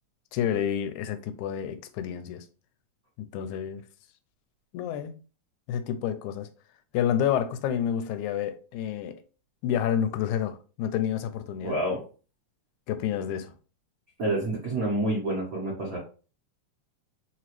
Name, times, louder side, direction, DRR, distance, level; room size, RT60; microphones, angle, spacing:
voice 1, 0.3-2.5 3.3-3.8 4.7-5.1 5.7-6.5 6.9-9.2 9.6-11.7 12.9-13.5, left 9 dB, 85° left, 2.0 m, -29 dB
voice 2, 11.6-12.0 14.2-16.0, right 1 dB, 85° right, 0.7 m, -28 dB
4.5 x 2.9 x 3.0 m
omnidirectional pair, 3.4 m